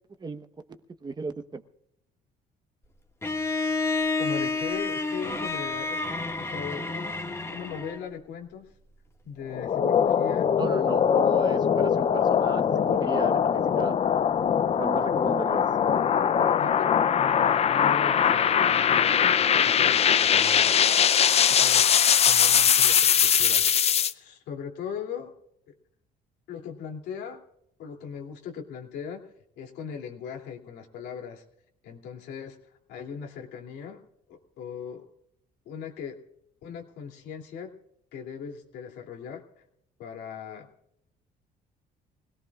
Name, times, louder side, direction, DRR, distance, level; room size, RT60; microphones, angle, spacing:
voice 1, 1.0-1.6 10.6-14.0 14.8-15.6, right 3 dB, 25° right, 8 dB, 1.1 m, -35 dB
Bowed string instrument, 3.2-8.1, left 3 dB, 15° left, 1.8 m, -30 dB
voice 2, 4.2-6.0 6.4-7.1 7.5-8.7 9.2-10.5 16.5-20.7 21.4-21.9 22.2-23.8 24.1-25.3 26.5-27.4 27.8-29.2 29.6-31.4 31.8-32.6 32.9-34.0 34.3-35.0 35.7-36.2 36.6-37.7 38.1-39.4 40.0-40.7, left 7 dB, 80° left, 2 dB, 2.9 m, -39 dB
sound 1, 9.5-24.1, left 8 dB, 40° left, 0.6 m, -22 dB
24.0 x 17.5 x 2.4 m, 0.74 s
cardioid pair, 110°, 17 cm